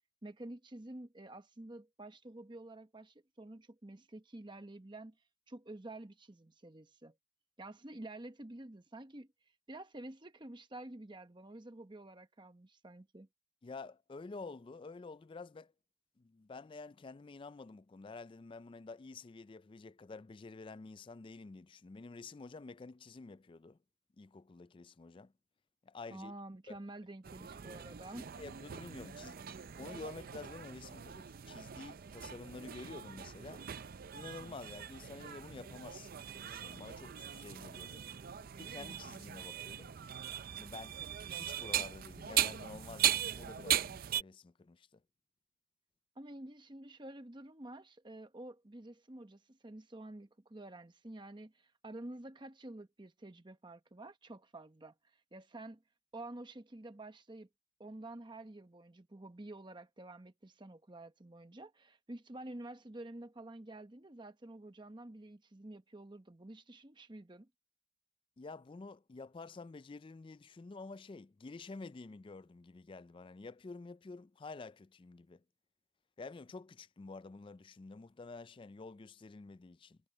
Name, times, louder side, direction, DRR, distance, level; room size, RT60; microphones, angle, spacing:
voice 1, 0.2-5.2 5.5-7.2 7.6-9.3 9.7-13.3 26.1-28.2 46.2-55.8 56.1-57.5 57.8-67.5, right 1 dB, 25° right, 0.9 m, -49 dB
voice 2, 13.6-15.7 16.2-23.8 24.2-25.3 25.8-26.3 26.7-26.8 28.2-29.5 29.8-33.7 34.1-38.1 38.5-39.9 40.6-41.0 41.3-45.0 68.4-75.4 76.2-80.0, left 3 dB, 25° left, 0.3 m, -49 dB
sound 1, 27.2-44.2, right 10 dB, 45° right, 0.4 m, -39 dB
head